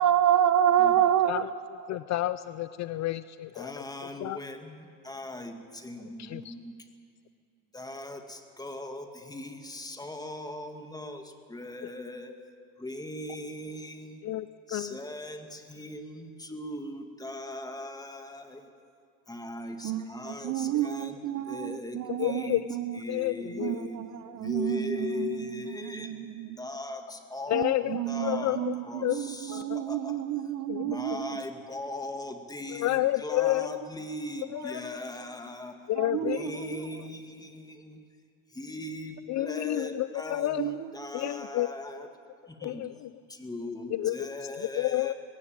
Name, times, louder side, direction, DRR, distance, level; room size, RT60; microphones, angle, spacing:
voice 1, 0.0-1.5 19.8-22.9 23.6-24.1 24.3-25.4 25.7-26.6 27.5-31.4 36.0-36.5 40.6-40.8, right 10 dB, 50° right, 1.0 m, -28 dB
voice 2, 1.9-3.7 4.2-4.4 6.2-6.5 14.2-15.0 20.7-20.9 22.2-22.6 23.1-23.9 27.5-28.7 29.0-29.2 29.5-29.8 30.7-30.8 31.1-31.2 32.7-33.8 34.5-35.0 35.9-36.4 39.3-40.8 41.1-41.7 42.6-43.1 43.9-44.3 44.5-45.1, left 15 dB, 45° left, 0.5 m, -30 dB
voice 3, 3.5-6.9 7.7-12.4 12.8-14.3 14.7-18.7 19.3-21.2 21.5-22.7 22.9-24.0 24.4-26.2 26.6-30.2 30.8-35.9 36.2-38.0 38.5-42.1 42.5-42.9 43.3-45.1, left 1 dB, 10° left, 2.0 m, -39 dB
20.0 x 17.0 x 9.0 m
supercardioid pair, 115°, 40 cm